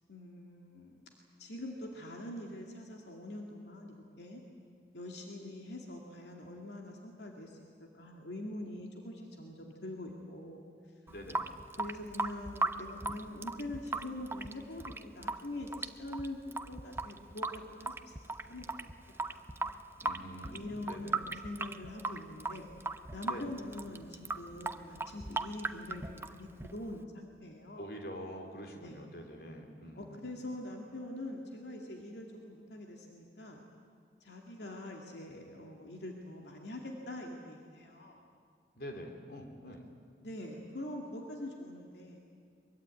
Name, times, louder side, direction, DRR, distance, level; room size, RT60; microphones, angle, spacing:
voice 1, 0.1-0.9 1.4-4.4 4.9-7.6 7.9-10.6 11.8-16.4 16.7-18.7 19.3-19.5 20.5-22.7 23.1-27.9 28.8-29.0 30.0-33.6 34.2-38.2 40.2-42.2, left 1 dB, 80° left, 1 dB, 2.3 m, -44 dB
voice 2, 11.1-11.5 20.0-21.2 23.3-23.5 27.8-30.3 38.7-39.9, equal, 60° left, 3 dB, 3.3 m, -45 dB
Water tap faucet / Sink (filling or washing) / Drip, 11.1-27.0, right 2 dB, 15° right, 0.6 m, -38 dB
23.0 x 22.5 x 9.3 m, 2.2 s
head